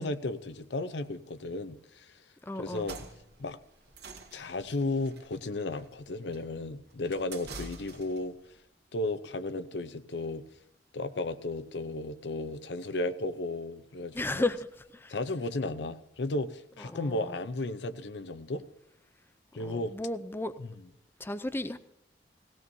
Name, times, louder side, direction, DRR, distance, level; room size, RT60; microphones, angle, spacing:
voice 1, 0.0-2.1 2.6-3.0 3.4-3.6 4.3-8.4 8.9-10.4 10.9-14.4 15.1-18.6 19.5-19.9 20.6-20.7, left 2 dB, 75° left, 0.7 m, -34 dB
voice 2, 2.4-2.9 14.1-14.6 14.9-15.2 16.8-17.4 19.6-20.5 21.2-21.8, left 2 dB, 15° left, 0.4 m, -34 dB
sound 1, 2.7-8.3, right 3 dB, 65° right, 1.8 m, -47 dB
18.0 x 16.5 x 2.7 m
head